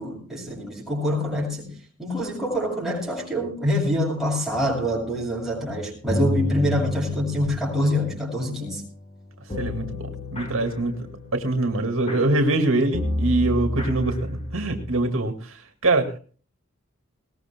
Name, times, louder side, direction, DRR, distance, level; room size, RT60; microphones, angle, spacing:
voice 1, 0.0-1.7 2.0-8.8, equal, ahead, 7.5 m, -25 dB
sound 1, 4.5-15.0, left 1 dB, 30° left, 5.3 m, -31 dB
voice 2, 9.6-10.9 11.3-15.5 15.8-16.2, right 2 dB, 70° right, 2.2 m, -23 dB
21.5 x 19.0 x 2.2 m
head